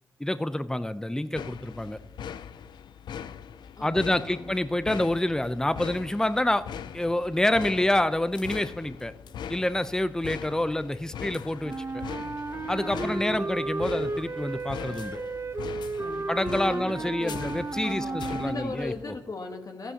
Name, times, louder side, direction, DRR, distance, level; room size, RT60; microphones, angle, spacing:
voice 1, 0.2-2.0 3.8-6.7 6.9-9.1 9.5-12.0 12.7-15.2 16.3-19.1, left 1 dB, 10° left, 13 dB, 0.6 m, -27 dB
sound 1, 1.4-19.0, left 8 dB, 80° left, 0.4 m, -41 dB
voice 2, 3.8-4.5 12.8-13.6 16.0-17.4 17.8-19.9, left 3 dB, 50° left, 4 dB, 1.2 m, -39 dB
Wind instrument woodwind instrument, 11.6-19.0, right 3 dB, 35° right, 0.7 m, -33 dB
14.0 x 11.0 x 2.8 m, 1.1 s
supercardioid pair, 40°, 8 cm